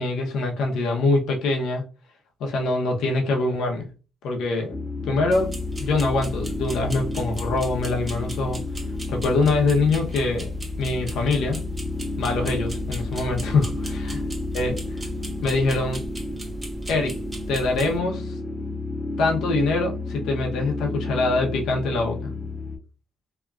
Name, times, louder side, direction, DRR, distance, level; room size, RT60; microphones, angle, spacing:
voice 1, 0.0-1.8 2.4-3.8 4.2-4.8 5.1-8.6 9.1-10.5 10.8-11.6 12.2-14.2 14.5-15.0 15.4-16.0 16.9-17.2 17.5-18.3 19.2-22.2, left 3 dB, 80° left, 0.7 m, -24 dB
sound 1, 4.7-22.8, left 3 dB, 30° left, 0.7 m, -32 dB
sound 2, 5.3-18.0, equal, 20° right, 0.7 m, -36 dB
2.8 x 2.3 x 2.4 m
cardioid pair, 90°, 0 cm